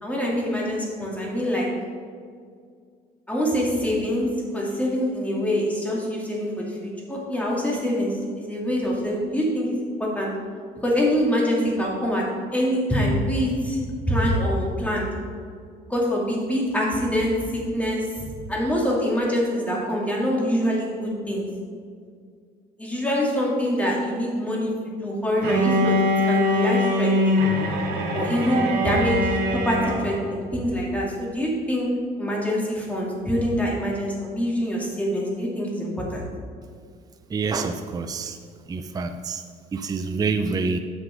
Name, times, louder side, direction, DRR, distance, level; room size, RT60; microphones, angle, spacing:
voice 1, 0.0-1.7 3.3-4.3 4.5-10.3 10.8-12.2 12.5-15.1 15.9-21.5 22.8-26.0 26.2-27.4 28.1-31.9 32.2-36.3, equal, 10° left, -3 dB, 2.2 m, -25 dB
Bowed string instrument, 25.4-30.3, left 1 dB, 75° right, 1.5 m, -23 dB
voice 2, 37.3-38.4 38.7-39.4 39.7-40.8, right 4 dB, 20° right, 7 dB, 0.4 m, -27 dB
7.4 x 6.1 x 5.0 m, 2.1 s
cardioid pair, 110°, 17 cm